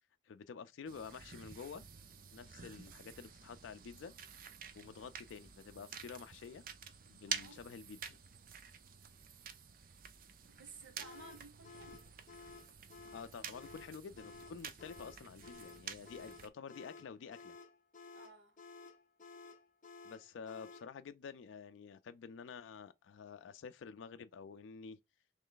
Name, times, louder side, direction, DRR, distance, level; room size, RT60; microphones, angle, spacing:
voice 1, 0.3-1.8 2.3-4.1 4.7-6.6 7.1-8.2 13.1-17.6 20.0-25.0, left 6 dB, 90° left, 0.4 m, -49 dB
sound 1, 0.9-16.5, right 7 dB, 50° right, 0.5 m, -49 dB
voice 2, 7.3-7.6 10.5-12.0 18.1-18.6, right 3 dB, 75° right, 1.0 m, -56 dB
sound 2, 11.0-20.9, left 4 dB, 45° left, 0.7 m, -54 dB
3.2 x 3.1 x 3.8 m
head